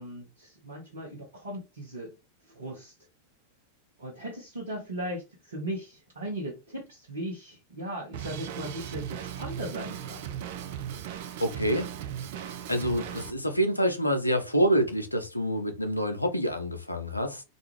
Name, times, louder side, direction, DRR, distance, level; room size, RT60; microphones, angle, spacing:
voice 1, 0.0-2.1 2.5-2.9 4.0-10.3, right 1 dB, 70° right, 0.9 m, -38 dB
Drum kit, 8.1-13.3, right 9 dB, 50° right, 0.4 m, -37 dB
voice 2, 11.4-11.9 12.7-17.4, equal, 85° left, 0.5 m, -27 dB
2.5 x 2.3 x 3.0 m
figure-of-eight pair, 90°, 0 cm